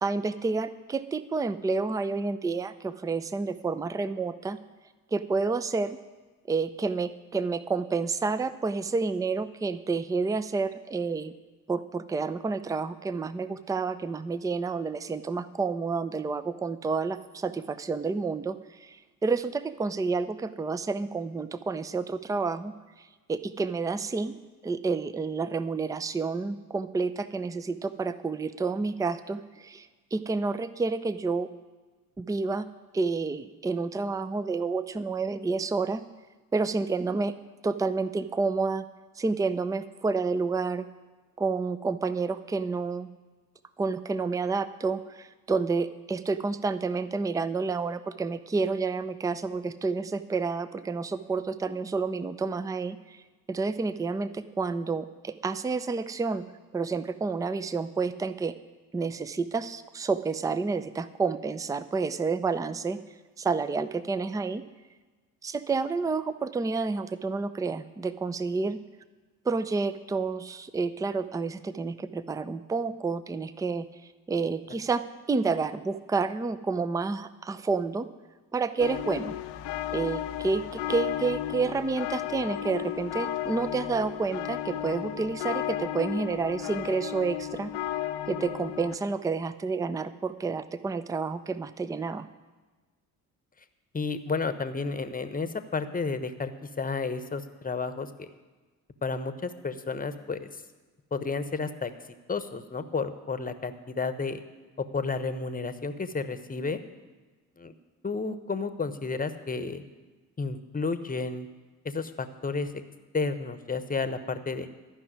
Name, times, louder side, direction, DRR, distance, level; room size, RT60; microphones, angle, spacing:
voice 1, 0.0-4.6 5.1-6.0 6.5-11.3 11.7-22.7 23.3-24.4 24.6-31.5 32.2-32.7 32.9-36.0 36.5-37.3 37.6-38.8 39.2-40.8 41.4-43.1 43.8-53.0 53.5-56.4 56.7-58.5 58.9-63.0 63.4-64.6 65.4-68.8 69.5-73.9 74.3-78.1 78.5-79.3 79.9-87.7 88.3-92.3, right 4 dB, 10° right, 14 dB, 0.5 m, -29 dB
sound 1, 78.8-89.0, left 13 dB, 65° left, 0.8 m, -34 dB
voice 2, 93.9-98.3 99.0-100.5 101.1-101.9 102.3-104.4 104.8-106.8 107.6-107.7 108.0-109.8 110.4-111.5 111.8-112.7 113.1-114.7, left 4 dB, 20° left, 11 dB, 1.0 m, -31 dB
12.0 x 6.0 x 9.4 m, 1.3 s
hypercardioid pair, 55°, 47 cm